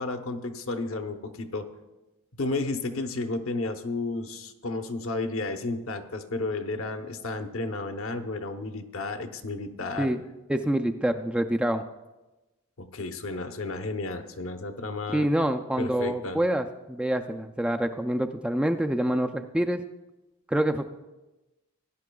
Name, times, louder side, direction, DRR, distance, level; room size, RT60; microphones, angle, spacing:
voice 1, 0.0-1.7 2.3-10.1 12.8-15.3 15.8-16.4, left 3 dB, 70° left, 7 dB, 0.8 m, -32 dB
voice 2, 10.5-11.8 15.1-19.8 20.5-20.9, right 1 dB, 5° right, 5 dB, 0.3 m, -26 dB
17.0 x 10.5 x 2.3 m, 1.1 s
head